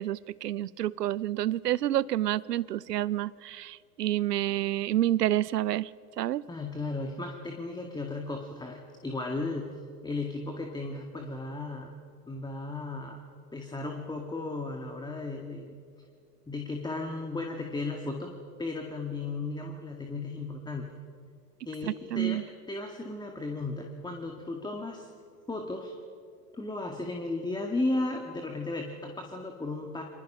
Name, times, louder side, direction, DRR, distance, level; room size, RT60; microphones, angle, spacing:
voice 1, 0.0-5.9 6.2-6.4 22.1-22.4, right 13 dB, 80° right, 21 dB, 0.8 m, -28 dB
voice 2, 6.5-9.7 10.0-11.9 12.3-13.2 13.5-15.8 16.5-18.3 18.6-20.9 21.7-22.4 22.7-25.1 25.5-26.0 26.5-30.0, left 2 dB, 10° left, 3 dB, 2.0 m, -35 dB
30.0 x 25.5 x 5.7 m, 2.3 s
hypercardioid pair, 100°, 47 cm